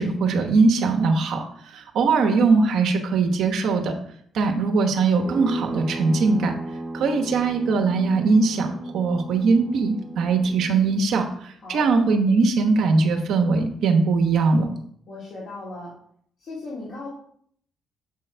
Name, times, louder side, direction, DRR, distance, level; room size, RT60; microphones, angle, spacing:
voice 1, 0.0-3.9 4.3-6.5 6.9-14.7, right 4 dB, 75° right, 4 dB, 1.0 m, -21 dB
sound 1, 5.2-11.0, right 2 dB, 15° right, 0.6 m, -35 dB
voice 2, 15.1-16.0 16.4-17.1, left 2 dB, 60° left, -6 dB, 2.1 m, -37 dB
7.1 x 3.8 x 4.4 m, 0.63 s
cardioid pair, 90°, 0 cm